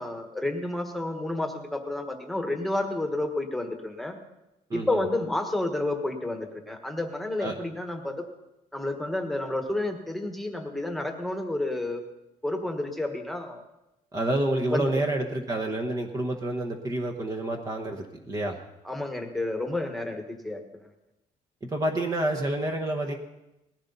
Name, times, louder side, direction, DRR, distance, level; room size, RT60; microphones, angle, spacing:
voice 1, 0.0-4.2 4.7-8.2 8.7-12.0 12.4-13.6 14.7-15.0 18.8-20.6, left 2 dB, ahead, 4 dB, 1.5 m, -30 dB
voice 2, 4.7-5.0 7.4-7.5 14.1-18.6 21.6-23.1, right 1 dB, 25° right, 1 dB, 1.0 m, -28 dB
19.0 x 14.5 x 4.0 m, 0.92 s
cardioid pair, 160°, 15 cm